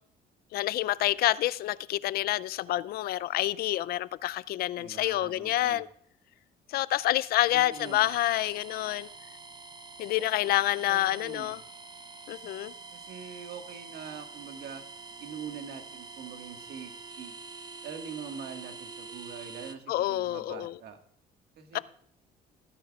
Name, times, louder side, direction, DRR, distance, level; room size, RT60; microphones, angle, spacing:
voice 1, 0.5-5.9 6.7-9.1 10.0-11.6 12.3-12.7 19.9-20.7 21.7-21.8, left 15 dB, 65° left, 0.4 m, -28 dB
voice 2, 4.7-5.9 7.5-8.1 10.9-11.6 12.9-14.8 15.2-17.4 17.8-21.0 21.6-21.8, right 7 dB, 75° right, 1.6 m, -43 dB
sound 1, 7.7-19.7, right 3 dB, 25° right, 0.7 m, -46 dB
18.0 x 10.0 x 2.4 m
cardioid pair, 110°, 17 cm